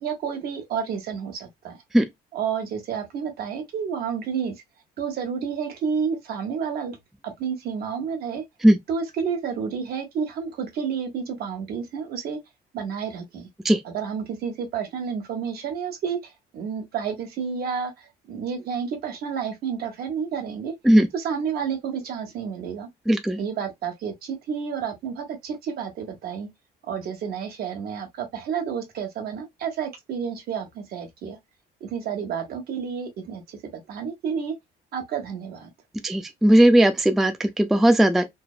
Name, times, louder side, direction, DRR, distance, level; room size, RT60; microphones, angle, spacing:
voice 1, 0.0-1.8 2.3-4.5 5.0-7.0 7.2-8.4 8.9-12.4 12.7-13.5 13.8-20.7 21.1-22.9 23.4-26.5 26.8-31.4 31.8-33.6 33.9-34.5 34.9-35.7, right 6 dB, 65° right, 1.1 m, -30 dB
voice 2, 23.1-23.4 36.0-38.2, right 1 dB, ahead, 0.3 m, -17 dB
3.2 x 2.0 x 2.3 m
cardioid pair, 110°, 17 cm